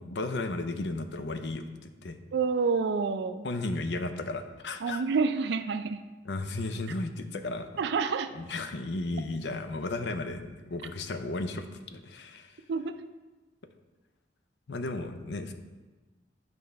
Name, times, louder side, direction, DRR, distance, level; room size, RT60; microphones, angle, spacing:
voice 1, 0.0-2.2 3.4-5.0 6.2-7.7 8.3-12.6 14.7-15.5, left 2 dB, 70° left, 8 dB, 0.6 m, -34 dB
voice 2, 2.3-3.5 4.8-6.0 7.8-8.3 12.7-12.9, right 5 dB, 70° right, 9 dB, 0.4 m, -28 dB
8.4 x 5.3 x 3.4 m, 1.2 s
head